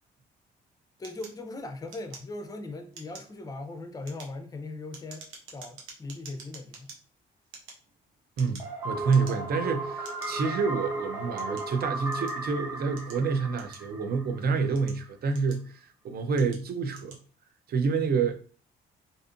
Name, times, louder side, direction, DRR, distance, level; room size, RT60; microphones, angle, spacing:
voice 1, 1.0-6.9, left 2 dB, 20° left, 0.5 m, -39 dB
sound 1, 1.0-2.6 2.9-3.4 3.9-7.0 7.4-8.8 9.1-9.6 10.0-10.3 11.0-12.4 13.0-14.1 14.6-15.8 16.3-16.6 16.9-17.2, right 4 dB, 85° right, 0.7 m, -48 dB
sound 2, 8.6-14.4, right 2 dB, 15° right, 0.9 m, -35 dB
voice 2, 8.8-17.2 17.7-18.4, right 5 dB, 50° right, 0.5 m, -28 dB
2.5 x 2.4 x 2.5 m
cardioid pair, 90°, 20 cm